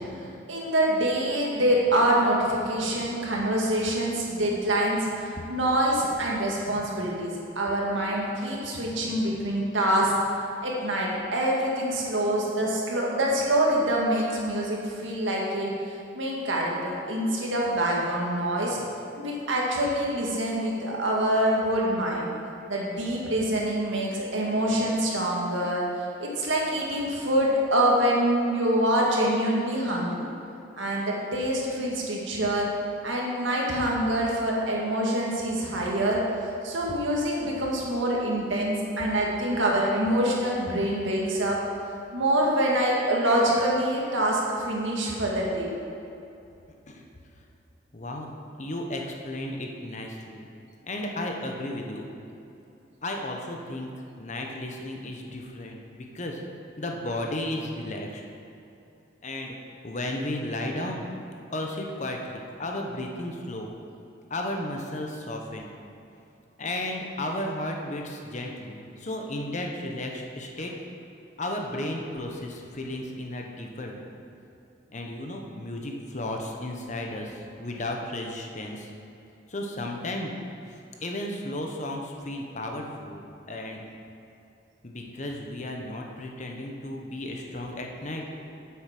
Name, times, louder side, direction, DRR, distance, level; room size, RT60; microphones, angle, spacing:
voice 1, 0.5-10.1 10.6-15.7 16.1-18.8 19.1-22.3 22.7-25.8 26.2-30.2 30.8-32.7 33.0-41.6 42.1-45.7 83.5-83.6, right 1 dB, 80° right, -3 dB, 2.0 m, -25 dB
voice 2, 47.9-48.3 48.5-50.5 50.8-52.1 53.0-53.9 54.2-56.4 56.8-58.2 59.2-59.6 59.8-61.1 61.5-63.7 64.3-65.7 66.6-70.7 71.4-74.1 74.9-78.9 79.5-80.3 80.7-83.9 84.8-88.2, left 1 dB, 40° left, 1 dB, 1.0 m, -34 dB
8.3 x 8.0 x 6.0 m, 2.7 s
head